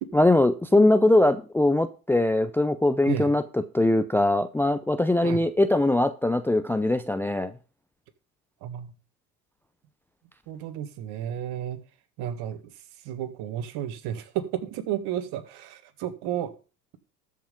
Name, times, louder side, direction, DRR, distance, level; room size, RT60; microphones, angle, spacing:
voice 1, 0.1-7.5, left 1 dB, 5° left, 0.5 m, -21 dB
voice 2, 8.6-8.9 10.5-11.8 12.2-12.7 13.0-16.5, right 10 dB, 55° right, 1.7 m, -32 dB
13.5 x 5.6 x 5.2 m
hypercardioid pair, 90°, 47 cm